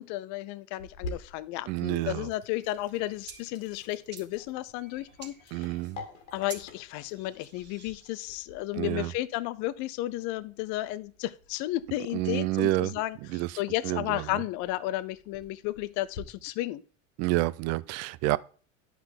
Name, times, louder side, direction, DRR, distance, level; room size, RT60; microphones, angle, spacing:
voice 1, 0.0-5.7 6.3-13.2 13.6-16.8, left 16 dB, 50° left, 0.5 m, -33 dB
Sink (filling or washing), 0.8-16.2, left 2 dB, 75° left, 1.8 m, -49 dB
voice 2, 1.7-2.3 5.5-6.0 8.7-9.1 12.1-12.9 13.3-13.6 13.8-14.3 17.2-18.4, right 18 dB, 45° right, 0.4 m, -29 dB
sound 1, 2.5-8.2, right 5 dB, 30° right, 1.5 m, -51 dB
9.5 x 5.9 x 3.7 m
hypercardioid pair, 90°, 37 cm